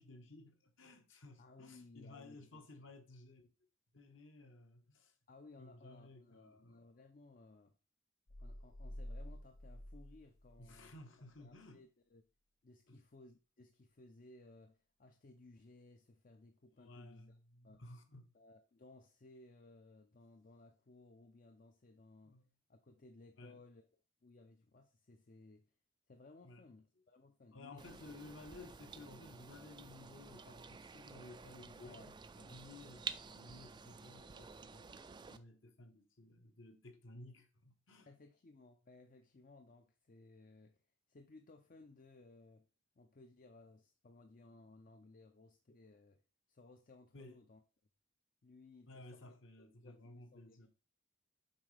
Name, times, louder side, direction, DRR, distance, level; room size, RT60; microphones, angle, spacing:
voice 1, 0.0-3.5 3.9-5.1 5.6-6.8 10.6-11.8 12.9-13.0 16.8-18.3 22.2-22.5 23.4-23.6 26.4-26.6 27.5-38.2 47.1-47.4 48.9-50.7, left 2 dB, 65° left, 1.2 m, -56 dB
voice 2, 1.4-2.7 5.3-7.8 8.4-10.9 11.4-12.3 12.6-17.8 18.3-22.4 22.7-25.7 26.1-28.0 31.8-32.1 38.1-40.8 41.1-42.7 43.0-46.2 46.5-47.6 48.4-50.7, left 2 dB, 40° left, 0.5 m, -61 dB
sound 1, 8.3-11.0, equal, 85° left, 1.0 m, -50 dB
sound 2, 27.8-35.4, right 5 dB, 20° right, 0.3 m, -51 dB
7.4 x 4.9 x 3.3 m
head